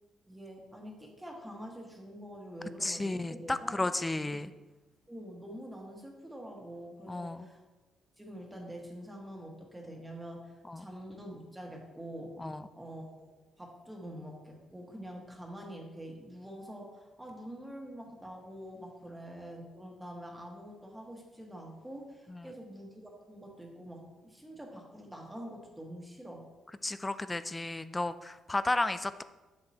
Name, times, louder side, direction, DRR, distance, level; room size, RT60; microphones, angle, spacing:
voice 1, 0.3-3.8 4.2-4.4 5.1-7.6 8.2-12.4 12.7-26.5, equal, 10° right, -1 dB, 1.5 m, -46 dB
voice 2, 2.8-4.5 7.1-7.5 10.7-10.8 12.4-12.6 22.3-22.5 26.8-29.2, left 2 dB, 15° left, 12 dB, 0.3 m, -33 dB
7.5 x 7.0 x 2.9 m, 1.1 s
cardioid pair, 90°, 0 cm